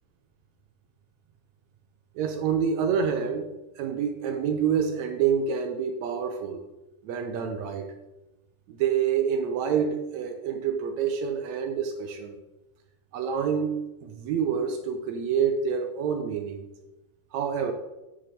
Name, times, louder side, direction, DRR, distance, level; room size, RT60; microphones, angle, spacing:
voice 1, 2.1-3.5 3.8-6.6 7.0-7.9 8.7-12.4 13.1-16.7 17.3-17.7, right 7 dB, 80° right, 5 dB, 1.6 m, -27 dB
9.9 x 6.7 x 4.0 m, 1.0 s
omnidirectional pair, 4.0 m